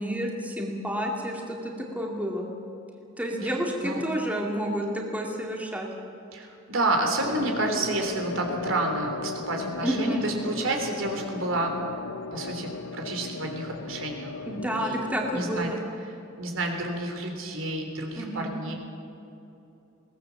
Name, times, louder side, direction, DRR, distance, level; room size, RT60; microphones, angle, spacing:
voice 1, 0.0-2.5 3.2-5.9 9.8-10.3 14.5-15.8 18.2-18.6, equal, 10° right, -1 dB, 2.3 m, -30 dB
voice 2, 6.3-11.8 12.3-14.3 14.8-15.0 15.3-15.7 16.4-18.7, right 2 dB, 75° right, 3 dB, 3.5 m, -29 dB
sound 1, 7.2-15.7, left 4 dB, 75° left, 0.7 m, -37 dB
21.5 x 18.5 x 7.2 m, 2.8 s
head